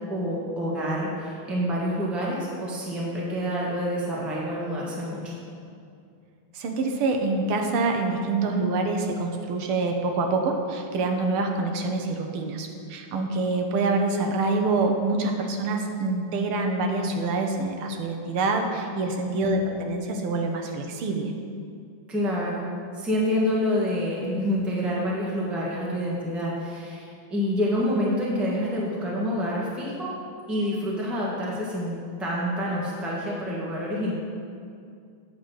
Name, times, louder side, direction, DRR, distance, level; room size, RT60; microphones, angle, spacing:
voice 1, 0.1-5.4 19.3-19.8 22.1-22.7 23.0-30.2 30.5-34.1, equal, ahead, -5 dB, 0.9 m, -27 dB
voice 2, 6.5-21.3, right 3 dB, 80° right, 3 dB, 1.6 m, -26 dB
8.7 x 3.8 x 6.9 m, 2.4 s
omnidirectional pair, 2.4 m